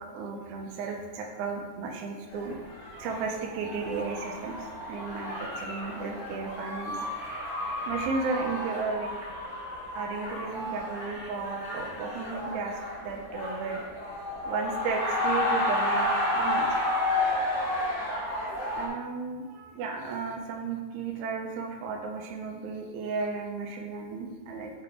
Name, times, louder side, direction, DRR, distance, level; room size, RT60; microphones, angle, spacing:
voice 1, 0.0-2.6 3.0-4.5 4.9-7.3 7.9-9.1 10.0-13.8 14.4-16.7 18.6-24.7, right 4 dB, 75° right, 1 dB, 1.9 m, -34 dB
sound 1, 2.3-18.9, left 1 dB, 50° left, 1.6 m, -31 dB
5.7 x 5.6 x 3.5 m, 1.4 s
omnidirectional pair, 4.2 m